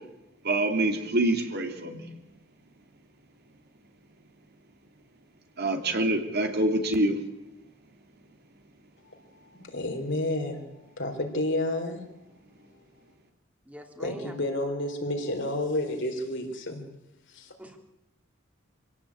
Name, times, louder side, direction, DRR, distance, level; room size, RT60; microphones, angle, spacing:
voice 1, 0.4-2.0 5.6-7.2, right 1 dB, 50° right, 5 dB, 3.0 m, -26 dB
voice 2, 9.5-10.6 11.0-12.0 14.0-16.9 17.3-17.5, left 1 dB, 60° left, 4 dB, 4.3 m, -30 dB
voice 3, 13.7-14.3 17.6-17.8, right 1 dB, 5° right, 3 dB, 3.0 m, -43 dB
26.0 x 17.5 x 8.7 m, 0.93 s
head